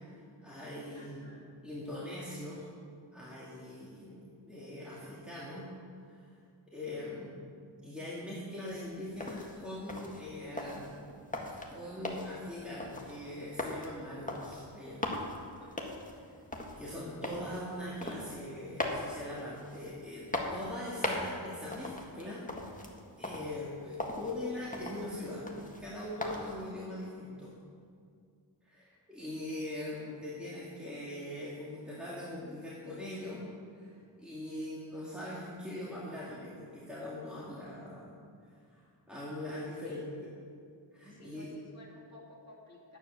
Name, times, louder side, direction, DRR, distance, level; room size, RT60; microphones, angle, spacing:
voice 1, 0.4-1.3 1.6-2.7 3.1-5.6 6.1-6.2 6.7-7.5 7.8-15.0 16.8-22.5 23.2-25.5 25.8-27.5 28.6-33.4 33.8-33.9 34.2-38.1 38.7-40.3 40.9-41.5, left 1 dB, ahead, -7 dB, 2.6 m, -42 dB
voice 2, 0.9-1.5 15.6-15.8 39.4-40.1 41.1-43.0, left 2 dB, 35° left, -4 dB, 2.8 m, -54 dB
sound 1, 8.7-26.7, left 1 dB, 15° left, 1.7 m, -41 dB
10.0 x 9.0 x 6.8 m, 2.2 s
wide cardioid pair, 55°, 46 cm